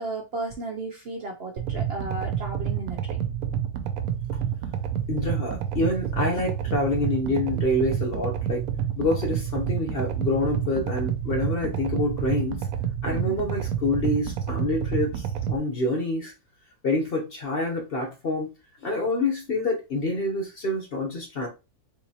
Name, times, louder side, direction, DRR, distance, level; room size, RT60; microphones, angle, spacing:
voice 1, 0.0-3.3 13.1-13.4, right 2 dB, 55° right, 0.7 m, -34 dB
sound 1, 1.6-15.6, right 9 dB, 75° right, 1.0 m, -29 dB
voice 2, 5.1-8.6 9.0-12.7 13.0-16.3 16.8-18.5 18.8-21.5, left 2 dB, 45° left, 0.9 m, -27 dB
3.7 x 2.9 x 2.8 m
omnidirectional pair, 1.6 m